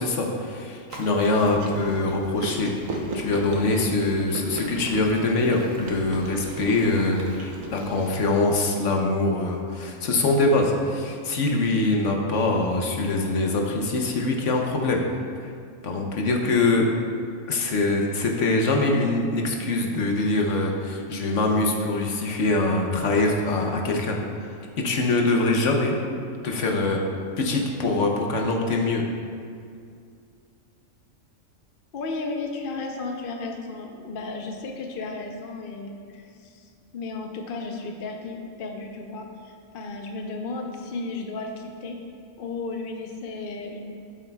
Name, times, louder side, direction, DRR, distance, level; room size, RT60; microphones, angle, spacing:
voice 1, 0.0-15.0 15.4-15.5 15.8-16.9 17.5-26.0 26.4-27.0 27.4-29.0, left 2 dB, 70° left, 1 dB, 1.1 m, -23 dB
Chewing mastication, 0.9-8.1, right 2 dB, 80° right, 1.3 m, -36 dB
voice 2, 31.9-42.0 42.4-43.9, left 3 dB, 50° left, 2 dB, 0.8 m, -34 dB
12.5 x 7.4 x 2.3 m, 2.3 s
omnidirectional pair, 1.4 m